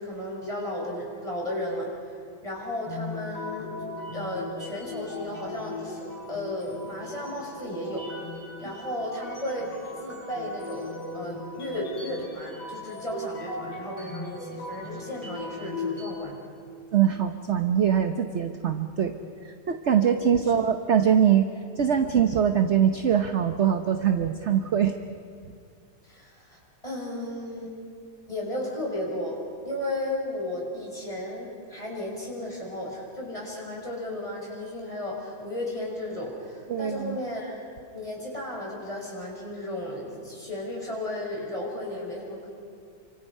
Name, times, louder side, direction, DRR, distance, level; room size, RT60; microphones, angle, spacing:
voice 1, 0.0-3.7 4.1-6.0 6.3-8.1 8.6-9.7 10.0-16.4 20.5-20.8 26.0-27.7 28.3-29.4 29.6-37.6 37.9-42.5, left 1 dB, 15° left, -2 dB, 6.1 m, -34 dB
sound 1, 2.9-16.1, left 2 dB, 75° left, 7.8 m, -38 dB
voice 2, 16.9-19.1 19.4-25.0 36.7-37.2, right 8 dB, 45° right, 7 dB, 0.9 m, -23 dB
28.5 x 26.0 x 5.5 m, 2.3 s
omnidirectional pair, 2.2 m